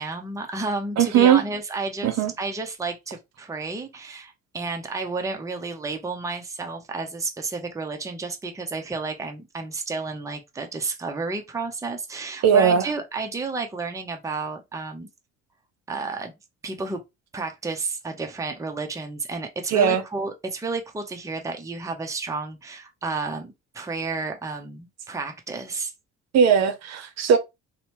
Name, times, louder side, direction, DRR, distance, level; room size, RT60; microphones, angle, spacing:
voice 1, 0.0-15.1 15.9-16.3 16.6-17.0 17.3-25.9, right 3 dB, 10° right, 0.6 m, -31 dB
voice 2, 1.0-1.4 2.0-2.3 12.4-12.8 19.7-20.0 26.3-27.4, right 8 dB, 60° right, 0.7 m, -18 dB
2.8 x 2.1 x 2.8 m
supercardioid pair, 75°, 30 cm